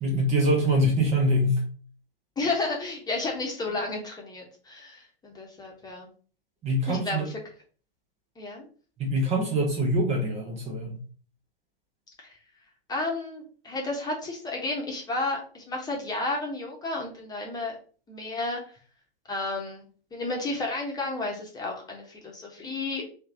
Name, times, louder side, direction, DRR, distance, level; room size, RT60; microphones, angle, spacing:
voice 1, 0.0-1.6 6.6-7.2 9.0-11.0, equal, 20° right, 1 dB, 0.9 m, -24 dB
voice 2, 2.4-6.1 6.9-7.4 8.4-8.7 12.2-12.4 12.9-17.8 18.1-18.6 19.3-19.8 20.1-23.1, left 2 dB, 15° left, 0 dB, 1.1 m, -32 dB
3.2 x 3.1 x 3.8 m, 0.41 s
hypercardioid pair, 120°, 30 cm